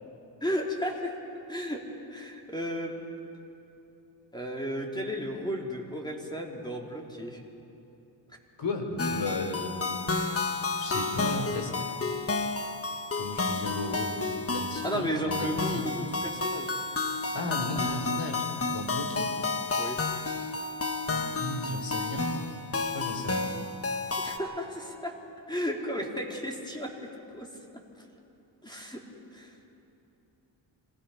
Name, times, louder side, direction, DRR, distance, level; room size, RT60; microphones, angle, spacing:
voice 1, 0.4-1.1 1.5-1.8 2.1-3.0 4.3-7.4 14.8-16.8 19.8-20.0 24.1-25.1 25.5-27.1 27.3-27.5 28.6-29.0 29.3-29.5, equal, 10° left, 0 dB, 3.4 m, -34 dB
voice 2, 8.6-9.7 10.7-11.7 13.2-15.9 17.3-19.3 21.0-22.3 22.9-23.5, left 2 dB, 60° left, 4 dB, 3.7 m, -35 dB
sound 1, 9.0-24.4, left 3 dB, 30° left, 1.5 m, -31 dB
26.5 x 17.5 x 5.7 m, 2.8 s
cardioid pair, 65°, 49 cm